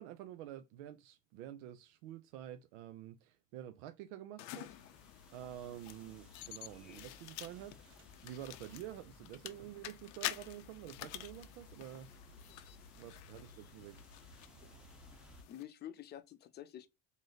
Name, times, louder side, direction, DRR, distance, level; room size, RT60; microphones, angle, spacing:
voice 1, 0.0-4.7 5.3-7.7 8.2-12.1 13.0-14.0, right 12 dB, 85° right, 0.5 m, -49 dB
sound 1, 4.4-15.6, left 14 dB, 85° left, 0.6 m, -49 dB
sound 2, 4.7-15.4, left 2 dB, ahead, 0.7 m, -59 dB
sound 3, 7.0-9.0 9.3-9.7 10.1-10.2 10.9-11.3, right 6 dB, 35° right, 0.8 m, -71 dB
voice 2, 15.5-16.9, left 11 dB, 30° left, 0.5 m, -50 dB
3.2 x 2.6 x 3.9 m
cardioid pair, 135°, 34 cm